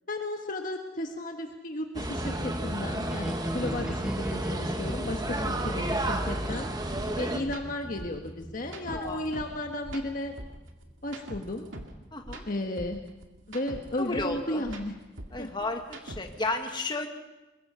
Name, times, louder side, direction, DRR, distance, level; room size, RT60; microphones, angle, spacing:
voice 1, 0.1-6.7 7.1-10.4 11.0-11.6 12.5-13.0 13.5-14.9 15.4-15.5, left 1 dB, 45° left, 3 dB, 1.4 m, -34 dB
sound 1, 1.9-7.4, right 1 dB, 20° right, 1.4 m, -32 dB
sound 2, 2.2-12.3, equal, 5° right, 0.8 m, -40 dB
sound 3, 6.9-7.1 7.4-7.6 8.0-9.6 9.8-12.0 12.2-14.4 14.6-16.5, right 1 dB, 80° right, 2.4 m, -42 dB
voice 2, 8.8-9.3 12.1-12.4 14.0-14.6 15.3-17.1, left 2 dB, 25° left, 3 dB, 1.8 m, -33 dB
23.0 x 21.5 x 5.7 m, 1.1 s
head